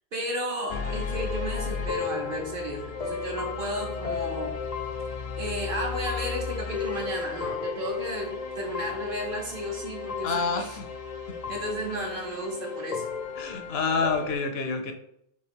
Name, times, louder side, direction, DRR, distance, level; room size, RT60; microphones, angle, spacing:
voice 1, 0.0-4.6 5.4-10.8 11.5-13.1, right 1 dB, 55° right, 0 dB, 1.1 m, -33 dB
sound 1, 0.7-14.4, left 5 dB, 50° left, 0.5 m, -34 dB
voice 2, 10.2-10.9 13.4-14.9, left 4 dB, 75° left, 6 dB, 0.8 m, -28 dB
3.5 x 2.8 x 4.4 m, 0.75 s
omnidirectional pair, 1.1 m